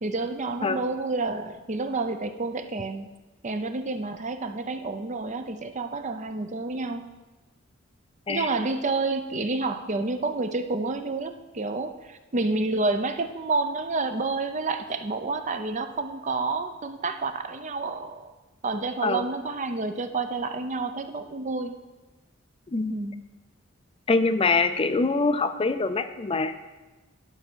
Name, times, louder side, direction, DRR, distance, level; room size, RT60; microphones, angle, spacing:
voice 1, 0.0-3.1 3.4-7.0 8.3-18.3 18.6-21.8 22.9-23.2, right 3 dB, 40° right, 8 dB, 0.6 m, -29 dB
voice 2, 24.1-26.5, left 3 dB, 30° left, 10 dB, 0.4 m, -24 dB
11.0 x 5.5 x 6.2 m, 1.2 s
head